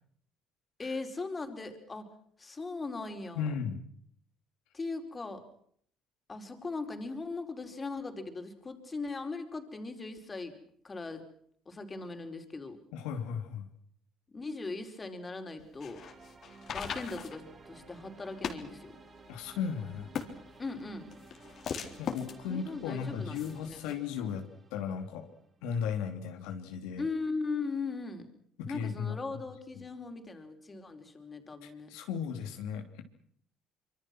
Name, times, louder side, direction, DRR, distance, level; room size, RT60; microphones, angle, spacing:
voice 1, 0.8-2.1 2.4-3.5 4.7-5.4 6.3-10.6 10.8-11.3 11.6-12.8 14.3-16.0 16.7-19.0 20.6-21.1 22.5-23.8 27.0-28.3 28.7-31.9, left 3 dB, 25° left, 6 dB, 4.9 m, -39 dB
voice 2, 3.4-3.8 12.9-13.7 19.3-20.1 22.0-24.4 24.7-25.3 25.6-27.0 28.6-29.2 31.6-33.0, left 7 dB, 90° left, 5 dB, 3.1 m, -36 dB
sound 1, 15.6-23.9, left 7 dB, 55° left, 3.7 m, -41 dB
sound 2, 16.0-26.0, right 3 dB, 30° right, 7.3 m, -55 dB
25.5 x 24.0 x 6.2 m, 0.63 s
supercardioid pair, 90°, 0 cm